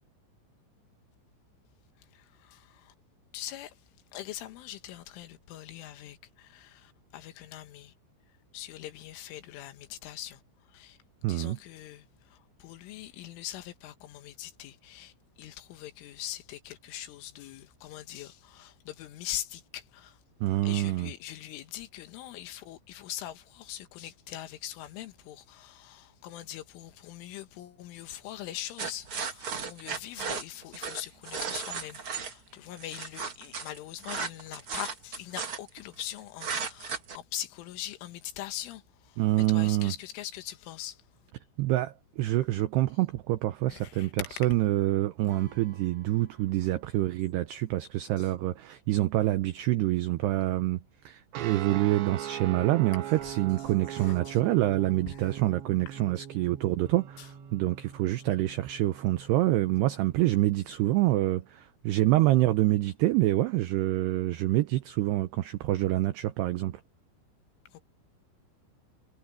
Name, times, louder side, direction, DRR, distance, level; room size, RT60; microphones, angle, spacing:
voice 1, 2.1-2.9 3.3-3.7 4.1-7.9 8.5-10.4 10.7-11.0 11.3-15.1 15.4-20.2 20.6-39.2 39.5-41.0 43.7-44.1 48.2-48.3 54.0-54.4 55.2-55.3 67.7-67.8, left 13 dB, 75° left, 3.8 m, -42 dB
voice 2, 11.2-11.6 20.4-21.1 39.2-39.9 41.6-66.8, right 16 dB, 90° right, 2.3 m, -26 dB
sound 1, 28.8-32.3 32.8-36.0 36.4-37.2, right 5 dB, 40° right, 1.9 m, -35 dB
Acoustic guitar / Strum, 45.2-48.5, equal, 20° right, 3.8 m, -55 dB
sound 2, 51.3-60.3, right 11 dB, 65° right, 4.0 m, -41 dB
omnidirectional pair, 5.8 m